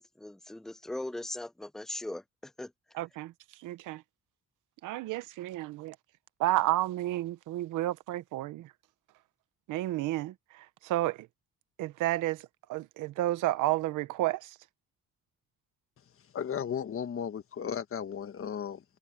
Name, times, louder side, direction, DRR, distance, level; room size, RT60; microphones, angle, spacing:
voice 1, 0.0-2.7, left 1 dB, ahead, 0.6 m, -39 dB
voice 2, 2.9-3.3 3.6-4.0 4.8-5.9 6.4-8.7 9.7-11.3 11.8-14.6, right 16 dB, 90° right, 0.9 m, -31 dB
voice 3, 16.2-18.8, left 8 dB, 45° left, 1.4 m, -35 dB
cardioid pair, 90°, 30 cm